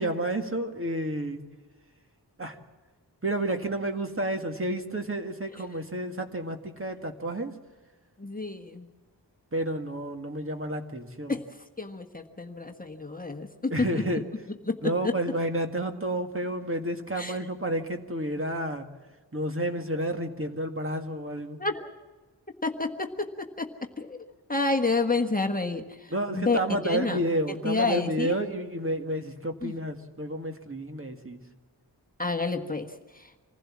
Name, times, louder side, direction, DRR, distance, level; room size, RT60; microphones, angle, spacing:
voice 1, 0.0-1.4 2.4-2.6 3.2-7.6 9.5-11.4 13.7-14.2 14.8-18.9 19.3-21.6 26.1-31.4, right 1 dB, 30° right, 5 dB, 1.9 m, -30 dB
voice 2, 8.2-8.9 11.3-11.4 11.8-14.0 14.7-15.1 17.2-17.4 21.6-21.9 22.6-23.7 24.0-27.2 27.6-28.4 29.6-29.7 32.2-32.9 33.1-33.3, left 3 dB, 20° left, 3 dB, 1.3 m, -29 dB
26.0 x 16.0 x 7.4 m, 1.3 s
wide cardioid pair, 85°, 41 cm